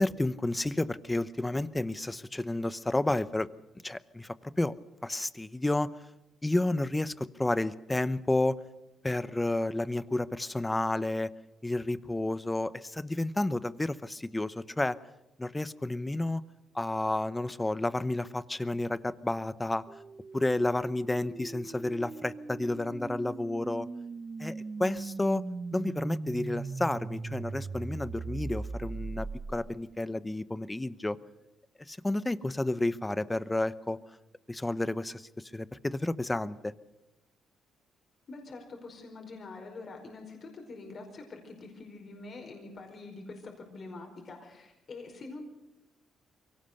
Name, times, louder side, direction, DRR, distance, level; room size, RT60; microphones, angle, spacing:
voice 1, 0.0-3.5 3.8-4.7 5.0-5.9 6.4-8.6 9.0-11.3 11.6-15.0 15.4-16.4 16.7-19.8 20.3-23.9 24.4-25.4 25.7-29.3 29.5-31.2 31.9-34.0 34.5-35.2 35.5-36.7, left 2 dB, 15° left, 16 dB, 0.8 m, -31 dB
sound 1, 19.9-29.9, right 4 dB, 30° right, 0.7 m, -39 dB
voice 2, 38.3-45.5, left 3 dB, 45° left, 2 dB, 5.0 m, -45 dB
23.5 x 17.5 x 6.7 m, 0.94 s
cardioid pair, 90°, 0 cm